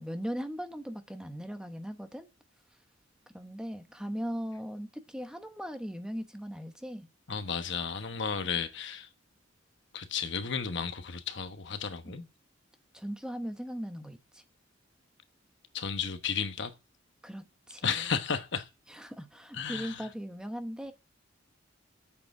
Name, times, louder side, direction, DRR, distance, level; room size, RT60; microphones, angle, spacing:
voice 1, 0.0-2.3 3.3-7.1 12.1-12.3 12.9-14.4 17.2-18.2 18.9-20.9, equal, 5° right, 1.0 m, -39 dB
voice 2, 7.3-9.1 9.9-12.2 15.7-16.7 17.8-18.7 19.5-20.1, left 6 dB, 65° left, 1.1 m, -33 dB
8.5 x 6.9 x 8.7 m
head